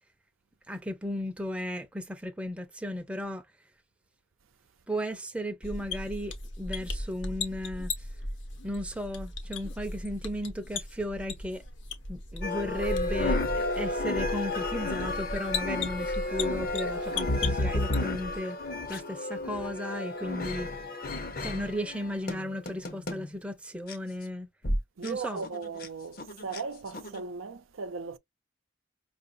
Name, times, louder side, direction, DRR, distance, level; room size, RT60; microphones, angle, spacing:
voice 1, 0.7-3.4 4.9-7.9 8.6-11.6 12.1-18.6 18.9-20.7 21.4-24.5 25.0-25.5, equal, 5° right, 0.6 m, -35 dB
sound 1, 5.6-18.4, left 3 dB, 65° left, 1.0 m, -37 dB
sound 2, 12.4-23.3 23.9-24.0 24.6-24.8 25.0-25.1 25.4-25.9 26.2-26.6 26.9-27.2, left 2 dB, 45° left, 0.8 m, -32 dB
voice 2, 25.0-28.2, right 4 dB, 85° right, 0.6 m, -37 dB
5.5 x 2.5 x 2.5 m
head